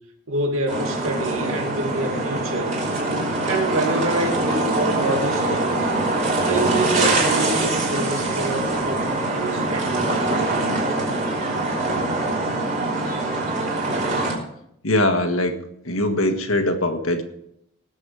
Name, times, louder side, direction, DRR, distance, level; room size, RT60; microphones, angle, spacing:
voice 1, 0.3-2.8 3.4-5.9 6.4-10.9, right 1 dB, 70° right, 2.4 m, -27 dB
sound 1, 0.7-14.3, right 2 dB, 35° right, 3.2 m, -23 dB
voice 2, 14.8-15.6 15.8-17.2, left 1 dB, 75° left, 1.6 m, -21 dB
19.0 x 7.3 x 4.9 m
head